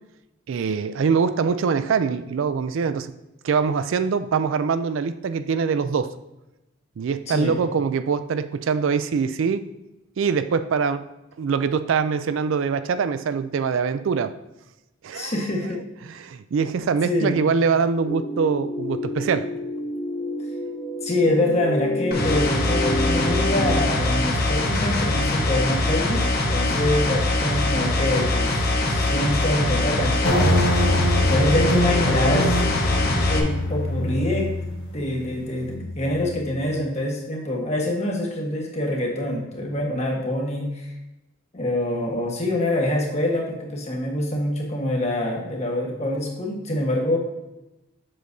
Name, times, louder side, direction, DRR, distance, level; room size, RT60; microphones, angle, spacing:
voice 1, 0.5-3.1 3.4-6.1 7.0-9.6 10.2-11.1 11.4-14.3 15.0-15.3 16.0-19.5, right 5 dB, 65° right, 12 dB, 0.3 m, -23 dB
voice 2, 7.3-7.6 15.1-15.8 16.8-17.4 21.0-28.6 28.9-30.9 31.3-32.6 33.1-34.5 34.9-40.9 41.5-47.2, left 1 dB, 30° left, -1 dB, 1.3 m, -25 dB
sound 1, 18.1-23.8, equal, 15° left, 0.6 m, -29 dB
sound 2, 22.1-33.4, left 2 dB, 45° left, 1.0 m, -23 dB
sound 3, 30.2-36.7, left 1 dB, 70° left, 1.3 m, -25 dB
7.6 x 6.5 x 2.7 m, 0.94 s
head